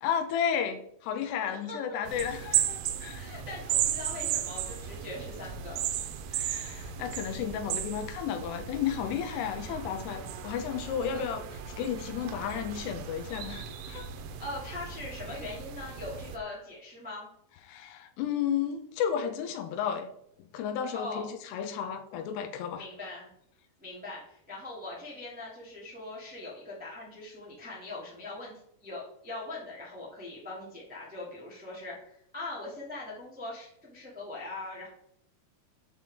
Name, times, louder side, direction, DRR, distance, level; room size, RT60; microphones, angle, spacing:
voice 1, 0.0-3.2 6.3-11.4 11.8-14.1 17.7-20.1 20.5-22.8, left 8 dB, 85° left, 5 dB, 2.9 m, -33 dB
voice 2, 1.5-2.0 3.1-5.8 14.4-17.3 20.9-21.3 22.8-23.3 23.8-28.5 28.8-34.9, left 2 dB, 5° right, -5 dB, 1.0 m, -41 dB
sound 1, 2.1-16.4, right 10 dB, 85° right, 2.7 m, -35 dB
7.5 x 6.0 x 3.6 m, 0.71 s
omnidirectional pair, 4.7 m